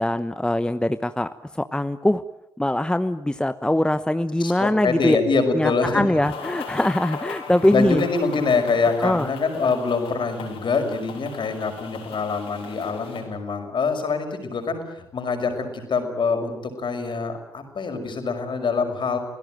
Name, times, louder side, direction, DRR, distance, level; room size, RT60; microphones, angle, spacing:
voice 1, 0.0-2.2 2.6-5.2 5.5-8.0 9.0-9.3, left 1 dB, 10° left, 11 dB, 1.0 m, -22 dB
voice 2, 4.4-6.2 7.7-19.2, left 4 dB, 50° left, 6 dB, 5.7 m, -25 dB
sound 1, 6.2-13.2, left 6 dB, 70° left, 6.1 m, -38 dB
29.5 x 17.0 x 9.2 m, 0.83 s
hypercardioid pair, 40°, 10 cm